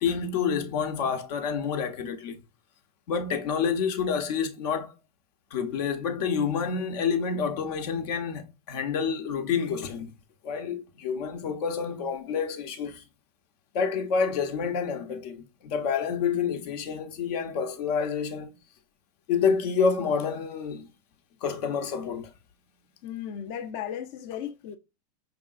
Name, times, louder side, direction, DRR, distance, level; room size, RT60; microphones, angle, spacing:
voice 1, 0.0-2.4 3.1-4.9 5.5-10.1 10.4-13.0 13.7-18.5 19.3-20.9 21.4-22.3, left 6 dB, 70° left, 0.9 m, -28 dB
voice 2, 23.0-24.8, left 9 dB, 50° left, 0.5 m, -35 dB
4.8 x 3.5 x 2.4 m
supercardioid pair, 135°, 21 cm